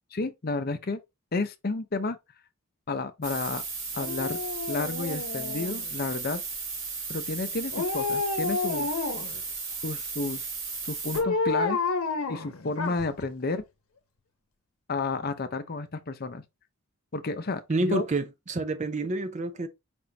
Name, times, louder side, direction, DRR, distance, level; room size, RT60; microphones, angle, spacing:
voice 1, 0.1-1.0 1.3-2.2 2.9-3.6 3.9-4.4 4.7-6.4 7.1-9.0 9.8-10.5 10.8-11.8 12.3-13.6 14.9-16.4 17.1-18.1, left 3 dB, 45° left, 0.6 m, -31 dB
sound 1, 3.2-11.2, right 4 dB, 65° right, 2.7 m, -35 dB
Dog, 4.0-6.0 7.7-9.4 11.1-13.2 13.6-13.7, left 3 dB, 85° left, 0.9 m, -30 dB
voice 2, 17.7-19.7, right 2 dB, 35° right, 0.6 m, -28 dB
5.0 x 3.6 x 2.8 m
head